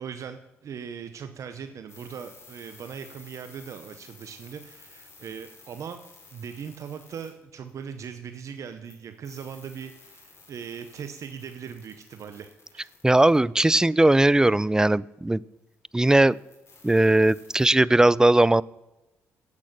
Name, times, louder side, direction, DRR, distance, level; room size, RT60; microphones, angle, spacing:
voice 1, 0.0-6.0 6.3-12.9, right 7 dB, 60° right, 9 dB, 0.7 m, -39 dB
sound 1, 1.9-8.1 8.4-13.4 15.7-15.8 16.0-17.7, left 4 dB, 50° left, 3.4 m, -53 dB
voice 2, 13.0-15.4 15.9-16.4 16.8-18.6, right 1 dB, 10° right, 22 dB, 0.3 m, -19 dB
8.5 x 8.4 x 6.6 m, 0.97 s
supercardioid pair, 55°, 6 cm